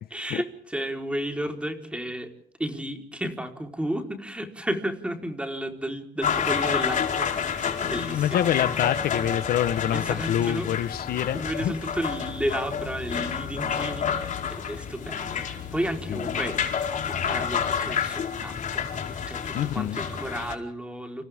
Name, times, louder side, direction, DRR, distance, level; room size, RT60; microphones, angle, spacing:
voice 1, 0.1-2.3 2.6-8.6 9.9-10.7 11.3-16.6 17.0-21.2, right 1 dB, 5° right, 4.4 m, -33 dB
sound 1, 6.2-20.6, left 7 dB, 50° left, 4.7 m, -29 dB
voice 2, 7.8-11.7 16.1-16.2 19.5-20.0, left 11 dB, 65° left, 1.3 m, -26 dB
sound 2, 12.1-18.0, left 15 dB, 85° left, 6.8 m, -45 dB
30.0 x 28.0 x 3.7 m
cardioid pair, 110°, 17 cm